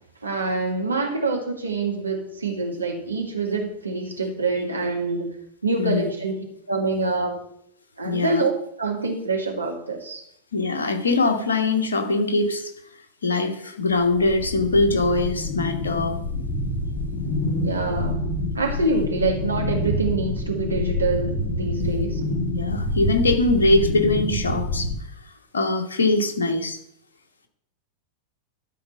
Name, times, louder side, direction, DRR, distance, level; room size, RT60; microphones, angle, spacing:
voice 1, 0.2-5.3 5.6-7.4 8.0-8.5 8.8-10.2 17.6-18.3 18.5-22.2, right 3 dB, 80° right, 1 dB, 1.7 m, -26 dB
voice 2, 5.8-6.1 8.0-8.4 10.5-12.7 13.2-16.2 21.8-22.1 22.5-24.9 25.5-26.8, left 2 dB, 70° left, 6 dB, 1.3 m, -22 dB
sound 1, 13.9-24.9, left 1 dB, 30° left, 2.5 m, -27 dB
12.5 x 4.3 x 5.6 m, 0.72 s
figure-of-eight pair, 90°, 0 cm